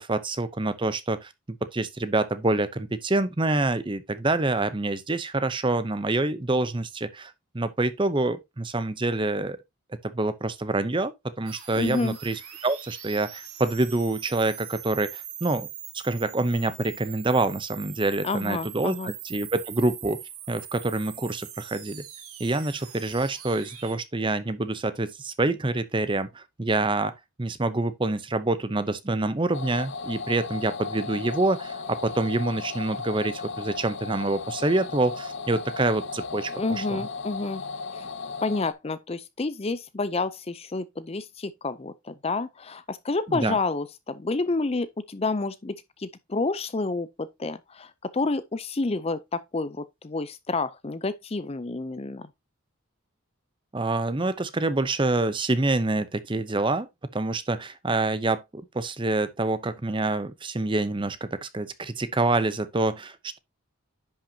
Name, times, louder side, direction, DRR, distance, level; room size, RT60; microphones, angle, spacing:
voice 1, 0.0-1.3 1.6-9.6 10.0-15.7 15.9-20.2 20.5-22.0 22.4-37.0 43.3-43.6 53.7-56.9 57.1-63.4, right 2 dB, 20° right, 0.6 m, -26 dB
sound 1, 11.5-24.0, right 10 dB, 80° right, 2.0 m, -42 dB
voice 2, 11.8-12.2 18.2-19.1 36.5-37.6 37.9-38.1 38.4-52.3, left 3 dB, 25° left, 0.5 m, -29 dB
sound 2, 29.5-38.7, left 4 dB, 55° left, 0.8 m, -35 dB
10.5 x 5.8 x 2.7 m
head